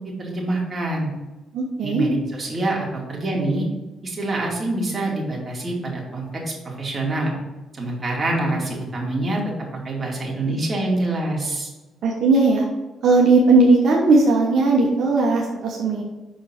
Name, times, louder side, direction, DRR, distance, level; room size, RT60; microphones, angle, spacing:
voice 1, 0.2-1.1 1.8-3.7 4.0-7.3 7.7-9.4 9.8-11.7, right 2 dB, 30° right, -2 dB, 2.4 m, -25 dB
voice 2, 1.5-2.0 12.0-12.6 13.0-16.0, right 3 dB, 65° right, -2 dB, 1.2 m, -17 dB
6.3 x 4.4 x 6.0 m, 1.1 s
cardioid pair, 90°, 0 cm